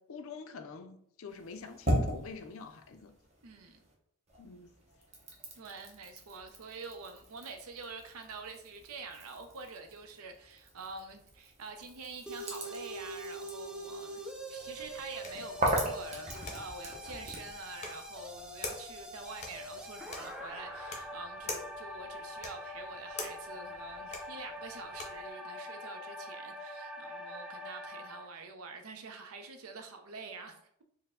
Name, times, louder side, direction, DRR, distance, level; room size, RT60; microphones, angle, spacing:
voice 1, 0.0-3.1 4.4-4.7, left 4 dB, 65° left, 0.4 m, -46 dB
sound 1, 1.3-3.9 4.3-17.5, right 1 dB, 30° right, 0.7 m, -39 dB
voice 2, 3.4-3.8 5.6-30.6, right 4 dB, 75° right, 0.6 m, -46 dB
sound 2, 12.3-28.3, equal, 5° right, 0.3 m, -44 dB
sound 3, 14.6-25.3, left 3 dB, 30° left, 0.7 m, -47 dB
4.5 x 2.1 x 3.6 m
head